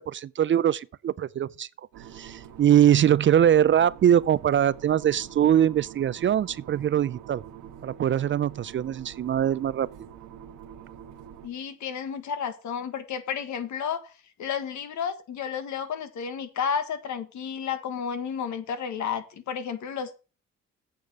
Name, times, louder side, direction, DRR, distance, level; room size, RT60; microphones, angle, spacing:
voice 1, 0.0-1.7 2.1-7.4 7.8-9.9, right 10 dB, 40° right, 0.4 m, -22 dB
sound 1, 1.9-11.5, right 9 dB, 85° right, 1.5 m, -46 dB
voice 2, 11.4-14.1 14.4-20.1, left 7 dB, 70° left, 1.5 m, -32 dB
8.7 x 5.0 x 7.5 m
cardioid pair, 90°, 30 cm